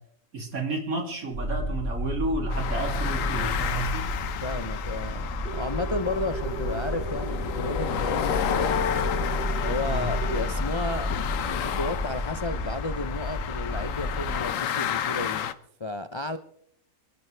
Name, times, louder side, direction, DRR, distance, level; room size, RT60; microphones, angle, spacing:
voice 1, 0.3-4.1 9.9-10.1, right 2 dB, 85° right, 2 dB, 3.2 m, -31 dB
sound 1, 1.3-14.4, equal, 40° right, 8.0 m, -32 dB
sound 2, 2.5-15.5, left 9 dB, 70° left, 1.1 m, -31 dB
voice 2, 4.4-8.8 9.6-15.5 15.8-16.4, left 2 dB, 45° left, 10 dB, 0.3 m, -33 dB
sound 3, 5.4-10.4, right 10 dB, 55° right, 1.1 m, -38 dB
26.0 x 12.0 x 3.3 m, 0.65 s
omnidirectional pair, 1.5 m